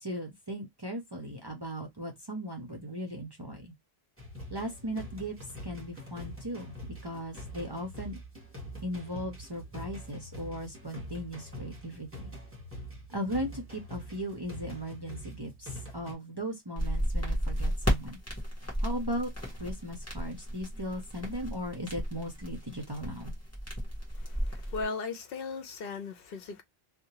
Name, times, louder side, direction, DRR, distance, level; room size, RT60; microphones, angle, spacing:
voice 1, 0.0-3.7 4.5-5.3 5.6-8.2 8.8-12.3 13.1-18.2 18.8-19.3 19.6-23.3, equal, 30° right, 0.5 m, -37 dB
sound 1, 4.2-16.1, equal, 15° right, 1.3 m, -44 dB
sound 2, 16.8-24.8, equal, 15° left, 1.0 m, -33 dB
voice 2, 24.1-26.6, left 4 dB, 70° left, 0.8 m, -37 dB
2.8 x 2.1 x 2.8 m
omnidirectional pair, 1.0 m